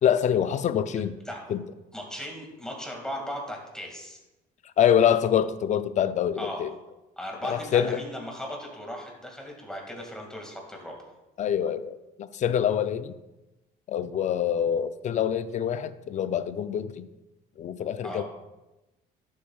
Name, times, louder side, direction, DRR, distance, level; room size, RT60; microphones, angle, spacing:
voice 1, 0.0-1.2 1.5-1.6 4.8-6.7 7.4-8.0 11.4-13.2 13.9-17.1 17.6-18.2, left 9 dB, 45° left, 13 dB, 0.5 m, -25 dB
voice 2, 1.9-4.2 6.4-6.6 7.2-11.1 18.0-18.2, equal, 5° left, -1 dB, 2.0 m, -37 dB
11.5 x 7.3 x 2.3 m, 1.0 s
cardioid pair, 110°, 17 cm